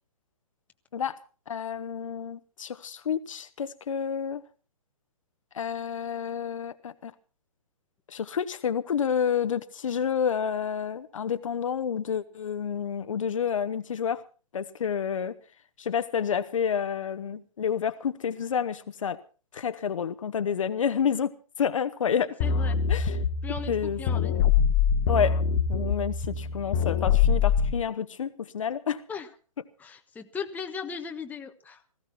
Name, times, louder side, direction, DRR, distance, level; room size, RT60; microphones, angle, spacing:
voice 1, 1.5-4.4 5.5-7.1 8.1-14.2 14.5-15.4 15.8-19.2 19.5-22.3 22.9-23.2 23.7-24.0 25.1-25.4 25.7-29.0, left 7 dB, 65° left, 1.3 m, -29 dB
voice 2, 22.2-22.8 23.4-24.4 29.1-29.3 29.8-31.8, left 6 dB, 10° left, 1.3 m, -38 dB
sound 1, 22.4-27.7, left 7 dB, 35° left, 1.5 m, -24 dB
18.5 x 15.5 x 4.3 m
figure-of-eight pair, 130°, 18 cm